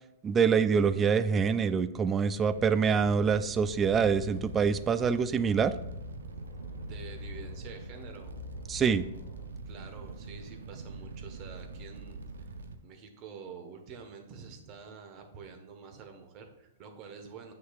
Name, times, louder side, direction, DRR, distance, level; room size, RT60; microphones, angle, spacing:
voice 1, 0.2-5.7 8.7-9.0, right 6 dB, 20° right, 13 dB, 0.4 m, -25 dB
sound 1, 2.2-9.5, left 6 dB, 35° left, 1.5 m, -47 dB
Fire, 2.5-12.8, right 3 dB, 85° right, 0.6 m, -44 dB
voice 2, 6.8-8.3 9.7-12.2 12.8-17.5, right 5 dB, 40° right, 5 dB, 1.2 m, -47 dB
7.9 x 6.2 x 2.4 m, 0.92 s
hypercardioid pair, 125°, 0 cm